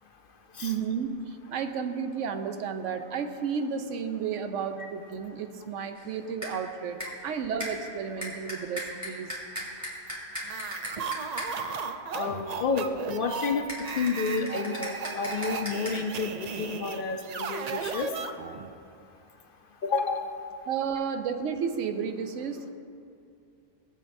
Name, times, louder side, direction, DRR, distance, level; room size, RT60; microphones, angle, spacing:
voice 1, 0.6-9.3 20.7-22.7, right 6 dB, 80° right, 7 dB, 1.0 m, -32 dB
sound 1, 6.0-6.2 6.4-6.7 7.0-7.3 7.6-11.7 13.7-16.0, equal, 15° right, 2.3 m, -39 dB
sound 2, 10.4-18.7, right 5 dB, 60° right, 0.4 m, -35 dB
voice 2, 12.1-13.7 13.9-18.1 19.8-20.3, left 4 dB, 55° left, 5 dB, 0.7 m, -30 dB
18.5 x 8.0 x 2.6 m, 2.5 s
omnidirectional pair, 1.3 m